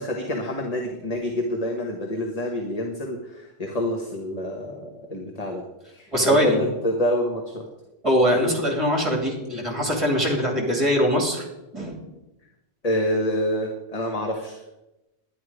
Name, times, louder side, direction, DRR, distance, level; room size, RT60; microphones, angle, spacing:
voice 1, 0.0-7.7 8.4-8.5 12.8-14.6, left 1 dB, 35° left, 1 dB, 1.3 m, -27 dB
voice 2, 6.1-6.6 8.0-11.5 11.7-12.0, equal, 25° right, 0 dB, 2.7 m, -22 dB
11.0 x 10.5 x 4.9 m, 0.98 s
omnidirectional pair, 1.2 m